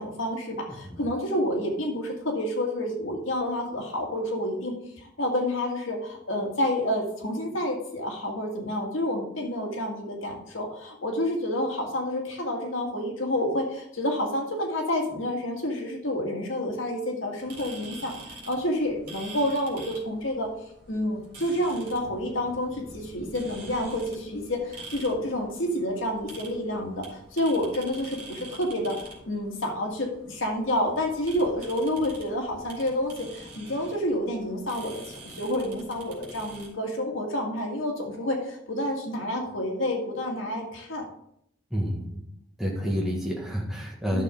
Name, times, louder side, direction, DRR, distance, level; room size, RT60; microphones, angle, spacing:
voice 1, 0.0-4.7 5.0-20.5 20.9-41.0 44.1-44.2, left 1 dB, 90° left, 1 dB, 2.0 m, -29 dB
sound 1, 17.4-36.7, right 2 dB, 50° right, 3.3 m, -46 dB
voice 2, 41.7-42.2 42.6-44.2, equal, ahead, -2 dB, 1.7 m, -29 dB
11.5 x 6.4 x 3.8 m, 0.73 s
head